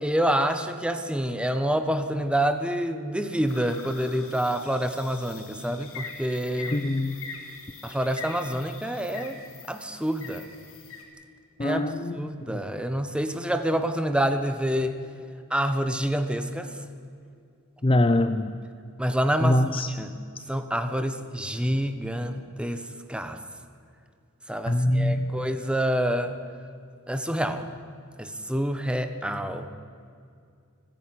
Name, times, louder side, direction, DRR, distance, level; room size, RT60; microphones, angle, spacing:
voice 1, 0.0-6.8 7.8-9.4 9.7-10.5 11.6-11.8 12.1-15.0 15.5-16.7 19.0-19.6 19.9-20.2 20.5-22.8 23.1-23.4 24.5-26.3 27.1-27.7 28.2-29.7, equal, 5° right, 8 dB, 1.2 m, -27 dB
sound 1, 3.5-11.0, left 4 dB, 65° left, 3.6 m, -43 dB
voice 2, 6.7-7.2 11.6-12.1 17.8-18.5 19.4-19.9 24.7-25.3, left 1 dB, 25° left, 10 dB, 0.6 m, -23 dB
29.0 x 10.5 x 9.8 m, 2.4 s
head